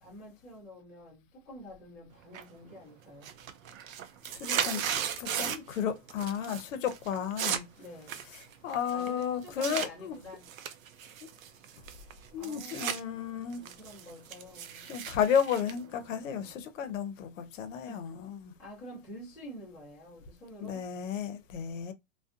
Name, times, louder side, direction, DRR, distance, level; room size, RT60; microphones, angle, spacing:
voice 1, 0.0-3.3 7.8-8.2 8.9-10.4 12.4-12.8 13.5-14.9 17.9-18.0 18.6-20.8, equal, ahead, 0.4 m, -48 dB
sound 1, 2.3-2.8 3.1-5.8 6.1-6.6 6.9-9.9 10.4-13.0 13.4-16.5, right 9 dB, 85° right, 0.5 m, -36 dB
voice 2, 4.3-4.9 5.2-7.6 8.6-10.2 12.3-13.6 14.9-18.5 20.6-21.9, left 8 dB, 70° left, 0.7 m, -33 dB
2.5 x 2.2 x 2.4 m
hypercardioid pair, 160°, 40 cm